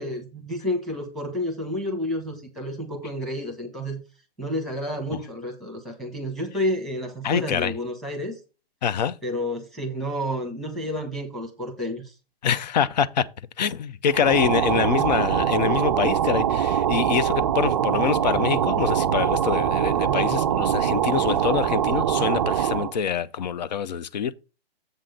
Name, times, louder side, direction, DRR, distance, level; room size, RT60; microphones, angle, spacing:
voice 1, 0.0-4.0 4.4-8.3 9.2-12.1, left 1 dB, ahead, 1.1 m, -30 dB
voice 2, 7.2-7.7 8.8-9.1 12.4-13.3 13.6-24.4, left 8 dB, 45° left, 0.5 m, -25 dB
sound 1, 14.1-23.0, right 9 dB, 30° right, 0.4 m, -23 dB
7.7 x 3.7 x 6.5 m
hypercardioid pair, 150°, 31 cm